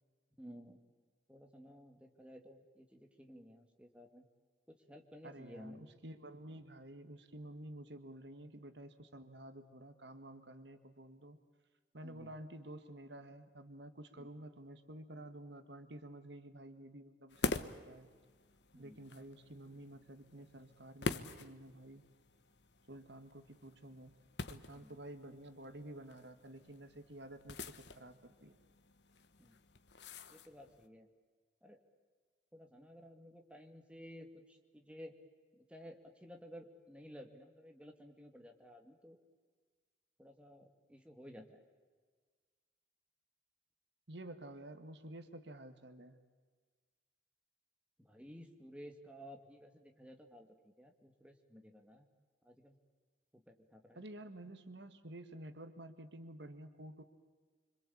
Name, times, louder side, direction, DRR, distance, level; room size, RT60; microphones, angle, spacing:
voice 1, 0.4-0.8 1.3-4.2 4.7-5.9 12.0-12.3 14.2-14.3 18.7-19.0 24.7-25.0 29.4-29.6 30.3-31.1 31.6-31.8 32.5-35.1 35.5-39.2 40.2-41.6 48.0-52.1 52.4-52.8 53.3-54.0, equal, 5° right, 3 dB, 2.3 m, -55 dB
voice 2, 5.2-11.4 11.9-18.1 18.7-22.1 22.9-24.1 24.5-28.6 44.1-46.2 53.9-57.0, right 1 dB, 70° right, 9 dB, 1.8 m, -51 dB
sound 1, 17.3-30.9, left 3 dB, 70° left, 1.3 m, -46 dB
26.0 x 26.0 x 8.7 m, 1.5 s
head